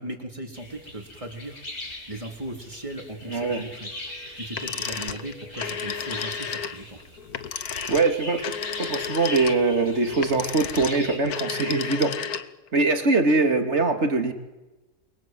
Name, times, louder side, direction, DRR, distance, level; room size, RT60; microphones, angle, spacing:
voice 1, 0.0-3.9 4.4-7.0, right 1 dB, 20° right, 3 dB, 3.7 m, -38 dB
sound 1, 0.5-11.2, left 1 dB, 40° left, 6.4 m, -40 dB
voice 2, 3.3-3.6 7.9-8.4 8.8-12.1 12.7-14.3, right 3 dB, 40° right, 6 dB, 2.8 m, -22 dB
sound 2, 4.5-12.7, left 8 dB, 70° left, 1.6 m, -32 dB
29.0 x 23.0 x 7.8 m, 1.1 s
omnidirectional pair, 1.7 m